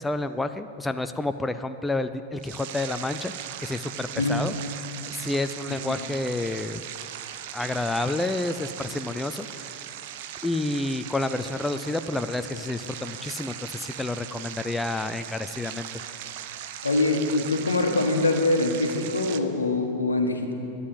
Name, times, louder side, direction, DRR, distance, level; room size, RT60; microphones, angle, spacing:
voice 1, 0.0-3.3 3.6-4.5 5.1-6.8 7.5-9.8 10.4-15.9, left 2 dB, 10° left, 10 dB, 0.4 m, -29 dB
sound 1, 2.4-19.4, right 10 dB, 50° right, 0.6 m, -39 dB
voice 2, 4.2-4.5 5.9-6.0 16.8-20.5, left 2 dB, 75° left, 5 dB, 1.2 m, -24 dB
11.0 x 9.6 x 7.7 m, 2.8 s
figure-of-eight pair, 90°, 0 cm